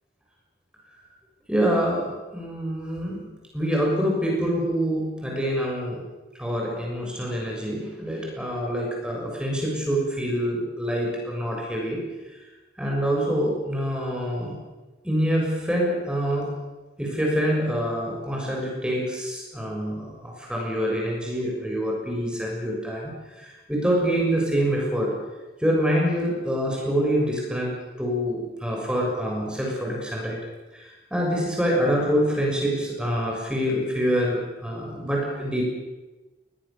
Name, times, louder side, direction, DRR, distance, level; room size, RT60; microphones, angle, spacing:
voice 1, 1.5-6.0 6.4-12.0 12.8-14.6 15.0-16.6 17.0-25.2 25.6-30.4 30.7-35.6, equal, 5° right, -1 dB, 6.9 m, -26 dB
26.5 x 20.0 x 7.1 m, 1.1 s
head